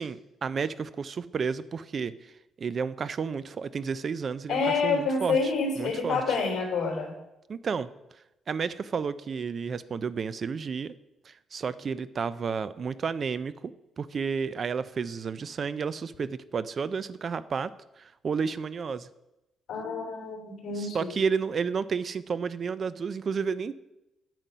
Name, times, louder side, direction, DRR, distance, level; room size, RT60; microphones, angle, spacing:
voice 1, 0.0-2.3 2.6-6.4 7.5-7.9 8.5-10.9 11.3-17.7 18.0-19.1 20.7-23.7, right 5 dB, 35° right, 16 dB, 0.4 m, -31 dB
voice 2, 4.5-7.1 19.7-21.1, left 4 dB, 65° left, 1 dB, 3.3 m, -28 dB
9.1 x 7.6 x 5.5 m, 0.93 s
cardioid pair, 165°, 0 cm